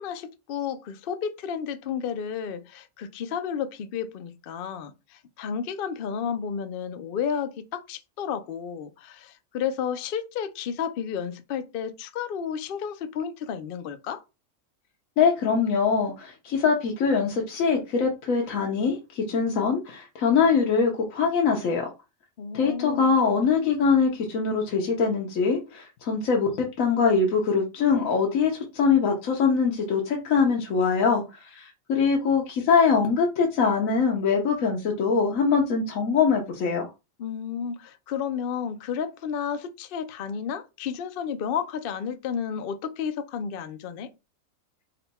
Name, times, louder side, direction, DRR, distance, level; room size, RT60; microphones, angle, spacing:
voice 1, 0.0-14.2 22.4-23.1 37.2-44.1, left 7 dB, 60° left, 0.6 m, -32 dB
voice 2, 15.2-21.9 22.5-36.9, left 5 dB, 80° left, 1.2 m, -23 dB
4.0 x 2.2 x 4.1 m
omnidirectional pair, 1.4 m